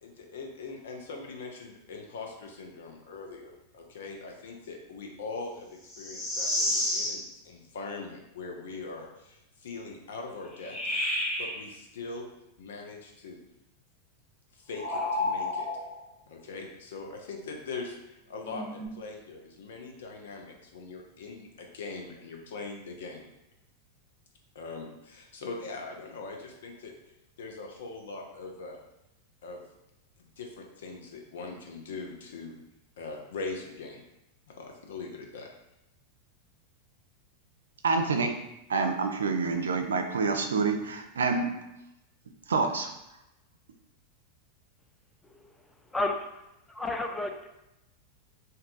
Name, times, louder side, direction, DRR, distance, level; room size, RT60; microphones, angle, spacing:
voice 1, 0.0-10.8 11.4-12.3 12.6-13.4 14.5-15.7 16.3-23.3 24.5-26.9 27.4-28.8 29.4-29.6 30.4-32.6 33.0-34.0 34.6-35.5, left 3 dB, 75° left, 1 dB, 0.6 m, -41 dB
sound 1, 5.9-7.2 10.6-11.6 14.7-15.9 18.4-18.9, left 1 dB, 30° left, 1.2 m, -30 dB
voice 2, 37.8-38.3 38.7-41.5 42.5-42.9, right 4 dB, 85° right, 6 dB, 0.4 m, -27 dB
voice 3, 45.9-46.3 46.7-47.5, left 2 dB, 10° left, 4 dB, 0.4 m, -32 dB
2.7 x 2.3 x 3.8 m, 0.90 s
hypercardioid pair, 95°, 0 cm